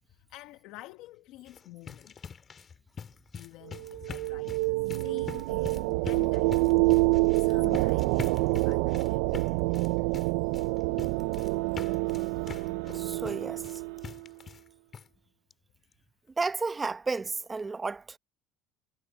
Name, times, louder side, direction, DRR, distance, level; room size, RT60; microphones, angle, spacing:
voice 1, 0.1-2.1 3.3-6.5 7.4-9.3, left 17 dB, 65° left, 1.3 m, -49 dB
sound 1, 1.3-14.7 14.9-15.1 15.5-15.6 15.9-16.0, left 6 dB, 30° left, 1.9 m, -44 dB
sound 2, 3.7-14.3, right 24 dB, 80° right, 0.3 m, -27 dB
voice 2, 12.9-13.8 16.4-18.2, right 4 dB, 15° right, 0.9 m, -32 dB
cardioid pair, 130°, 0 cm